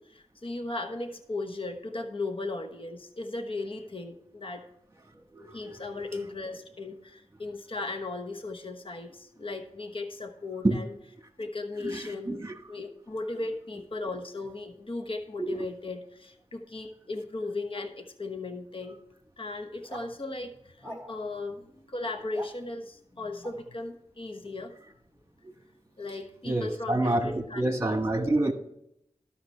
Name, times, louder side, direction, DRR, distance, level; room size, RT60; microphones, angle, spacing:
voice 1, 0.0-4.7 5.5-10.9 11.4-12.4 12.7-19.0 19.4-24.7 26.0-27.9, left 2 dB, 45° left, 5 dB, 1.2 m, -37 dB
voice 2, 5.3-5.8 6.1-6.2 10.6-10.8 11.8-12.5 15.4-15.7 26.4-28.5, right 2 dB, 20° right, 5 dB, 1.5 m, -28 dB
sound 1, 19.8-20.1 20.8-21.3 22.1-22.5 23.4-23.6, equal, 25° left, 2.9 m, -43 dB
12.5 x 6.0 x 4.5 m, 0.78 s
wide cardioid pair, 50°, 12 cm